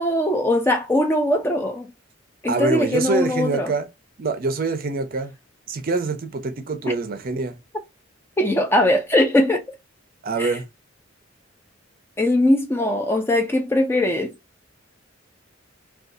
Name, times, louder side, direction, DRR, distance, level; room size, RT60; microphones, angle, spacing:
voice 1, 0.0-1.9 2.4-3.7 8.4-9.6 10.4-10.5 12.2-14.3, left 1 dB, 10° left, 0.3 m, -20 dB
voice 2, 2.5-3.9 4.2-5.3 5.7-7.6 10.2-10.6, right 3 dB, 45° right, 0.5 m, -25 dB
2.6 x 2.3 x 2.4 m
head